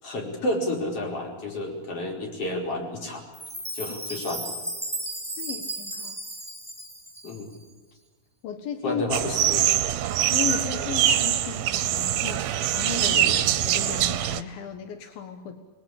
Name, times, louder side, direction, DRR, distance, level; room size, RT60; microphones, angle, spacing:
voice 1, 0.0-3.2 3.7-4.5 7.2-7.5 8.8-9.7 13.1-13.4, left 1 dB, 40° left, 1 dB, 5.7 m, -30 dB
Chime, 3.3-7.6, right 1 dB, ahead, 2.4 m, -35 dB
voice 2, 5.4-6.2 8.4-9.0 10.3-13.3 13.6-15.6, left 8 dB, 80° left, 6 dB, 3.2 m, -35 dB
sound 1, 9.1-14.4, right 11 dB, 90° right, 2.9 m, -23 dB
28.5 x 20.5 x 8.6 m, 1.4 s
omnidirectional pair, 4.2 m